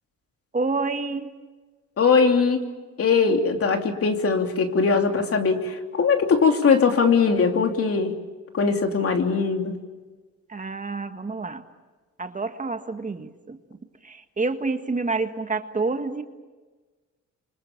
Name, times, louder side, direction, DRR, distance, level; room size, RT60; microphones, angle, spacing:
voice 1, 0.5-1.3 10.5-11.6 12.2-13.6 14.0-16.2, right 3 dB, 25° right, 7 dB, 1.7 m, -28 dB
voice 2, 2.0-2.6 3.0-8.1 8.5-9.7, left 5 dB, 50° left, 4 dB, 3.1 m, -20 dB
30.0 x 25.0 x 7.3 m, 1.3 s
cardioid pair, 90°, 30 cm